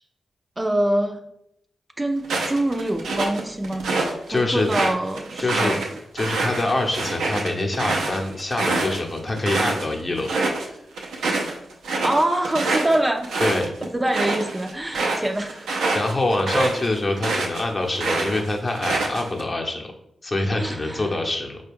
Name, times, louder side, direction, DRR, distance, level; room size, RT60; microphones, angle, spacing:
voice 1, 0.6-1.2 2.0-3.9 4.3-5.9 12.0-13.3 13.9-15.7 16.5-16.7 20.6-21.1, right 1 dB, 20° right, 5 dB, 0.4 m, -24 dB
sound 1, 2.2-4.1 4.5-9.8 10.2-10.7 11.0-17.6 17.9-19.4, right 3 dB, 90° right, 0.5 m, -26 dB
voice 2, 4.3-4.7 5.4-5.7 6.1-10.3 10.6-10.8 13.4-13.7 15.9-19.9 20.2-21.6, left 2 dB, 40° left, 2 dB, 0.7 m, -25 dB
4.3 x 2.3 x 3.4 m, 0.76 s
supercardioid pair, 45°, 0 cm